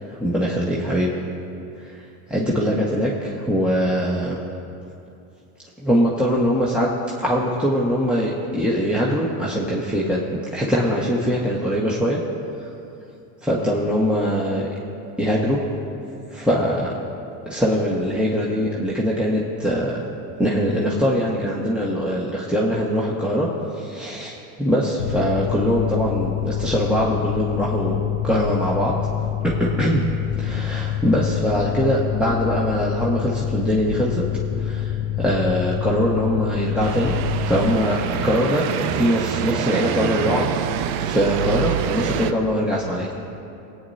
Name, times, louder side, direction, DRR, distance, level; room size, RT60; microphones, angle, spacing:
voice 1, 0.2-1.2 1.8-4.4 5.8-6.9 7.2-10.2 10.5-12.2 12.6-12.7 13.4-14.7 15.2-15.6 16.3-16.9 17.4-20.0 20.4-23.5 23.7-29.0 29.4-30.1 30.4-34.3 34.6-37.1 37.4-38.0 38.2-40.6 41.0-43.1, equal, ahead, -6 dB, 1.5 m, -22 dB
Mechanical fan, 25.0-37.8, left 12 dB, 70° left, 0.6 m, -26 dB
sound 1, 36.8-42.3, right 9 dB, 60° right, 0.7 m, -26 dB
22.0 x 9.1 x 2.8 m, 2.6 s
hypercardioid pair, 90°, 45 cm